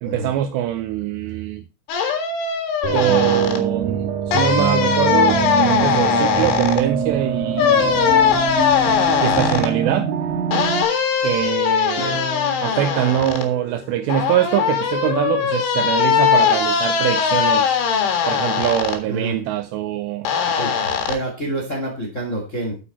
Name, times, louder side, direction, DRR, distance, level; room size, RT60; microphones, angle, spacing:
voice 1, 0.0-1.6 2.9-8.0 9.2-10.1 11.2-12.2 12.6-17.8 18.3-20.3, right 12 dB, 80° right, 2.5 m, -23 dB
sound 1, 1.9-3.6 4.3-6.8 7.5-9.7 10.5-13.5 14.1-19.0 20.3-21.2, left 7 dB, 75° left, 4.2 m, -20 dB
sound 2, 2.8-10.8, right 6 dB, 65° right, 4.1 m, -24 dB
sound 3, 12.0-18.9 19.9-21.7, left 3 dB, 50° left, 3.3 m, -40 dB
voice 2, 20.5-22.8, right 1 dB, 30° left, 1.4 m, -28 dB
9.1 x 8.5 x 4.3 m
omnidirectional pair, 5.5 m